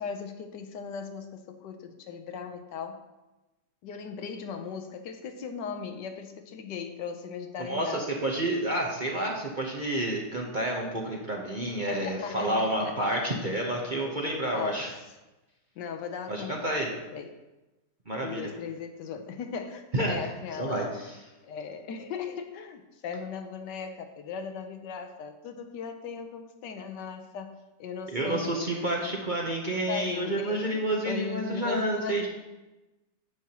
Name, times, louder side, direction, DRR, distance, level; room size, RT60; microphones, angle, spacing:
voice 1, 0.0-3.0 3.8-8.1 11.9-13.0 14.5-14.9 15.8-17.4 18.2-20.9 21.4-29.1 29.9-32.3, left 6 dB, 75° left, 7 dB, 1.3 m, -38 dB
voice 2, 7.7-14.9 16.3-16.9 18.1-18.5 19.9-20.2 20.6-21.2 28.1-32.3, right 1 dB, 35° right, -2 dB, 0.8 m, -29 dB
9.3 x 7.8 x 2.9 m, 1.0 s
omnidirectional pair, 1.9 m